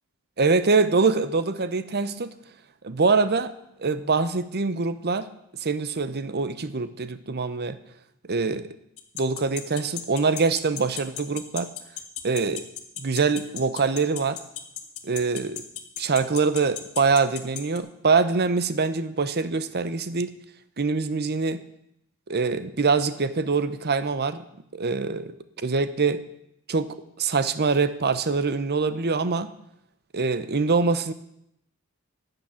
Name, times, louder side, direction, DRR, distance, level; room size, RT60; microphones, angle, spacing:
voice 1, 0.4-2.3 2.8-3.5 3.8-5.3 5.6-7.8 8.3-8.7 9.1-11.7 12.2-12.6 13.0-14.4 15.0-15.6 16.0-20.3 20.8-21.6 22.3-24.4 24.7-26.2 26.7-29.5 30.1-31.1, right 4 dB, 45° right, 13 dB, 0.8 m, -24 dB
sound 1, 9.0-17.8, left 13 dB, 75° left, 1.5 m, -34 dB
12.0 x 6.9 x 9.9 m, 0.78 s
head